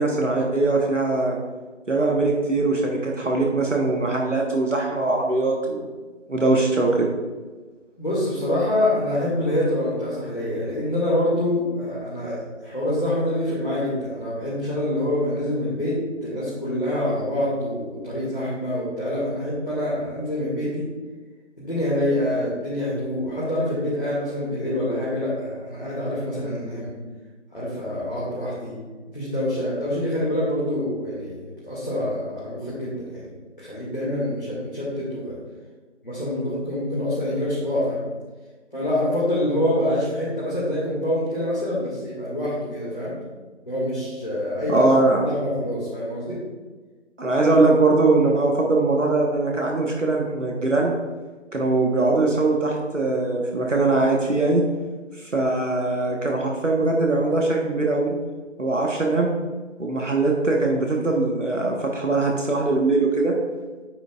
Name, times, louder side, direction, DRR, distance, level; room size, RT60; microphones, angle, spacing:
voice 1, 0.0-1.4 1.9-5.8 6.3-7.1 44.7-45.2 47.2-50.9 51.5-54.6 55.2-58.1 58.6-59.3 59.8-63.3, right 2 dB, 80° right, -1 dB, 1.4 m, -21 dB
voice 2, 8.0-20.9 21.6-26.9 27.5-28.8 29.1-35.4 36.0-38.1 38.7-43.1 43.7-44.9 45.2-46.4, left 1 dB, 45° left, -9 dB, 2.2 m, -26 dB
9.0 x 6.1 x 2.4 m, 1.3 s
figure-of-eight pair, 180°, 37 cm